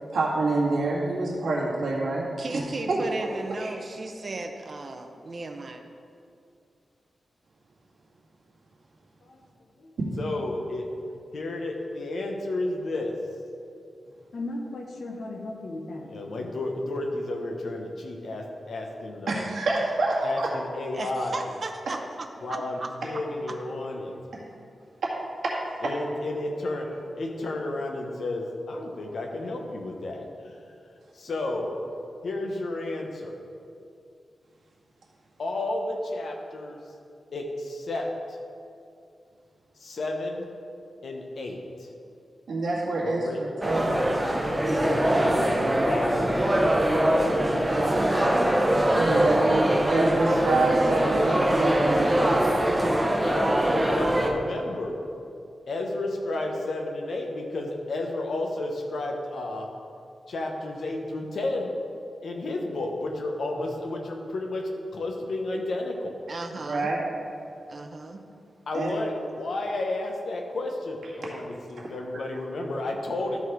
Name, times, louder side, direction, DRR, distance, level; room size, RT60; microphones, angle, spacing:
voice 1, 0.1-2.3 2.5-2.6 2.9-3.0 3.6-3.7 10.1-10.2 19.3-20.3 25.4-25.5 42.5-44.0 47.5-48.0 48.9-52.6 66.7-67.0 68.7-68.9, right 2 dB, 85° right, -4 dB, 1.8 m, -27 dB
voice 2, 2.4-5.8 20.9-22.9 49.1-49.7 66.3-66.9 67.7-68.2, right 2 dB, 40° right, 5 dB, 0.7 m, -36 dB
voice 3, 10.2-13.1 14.3-19.5 20.2-21.5 22.0-22.2 22.4-24.2 25.8-30.7 31.1-33.4 35.4-36.9 37.3-38.4 39.8-40.5 41.0-41.9 43.0-43.5 44.7-46.8 53.2-55.0 55.7-59.7 60.3-61.7 62.2-66.1 68.7-73.4, left 2 dB, 70° left, 2 dB, 1.1 m, -32 dB
sound 1, 43.6-54.3, right 1 dB, 15° right, 0.9 m, -23 dB
12.5 x 4.2 x 4.7 m, 2.4 s
wide cardioid pair, 130°, 0 cm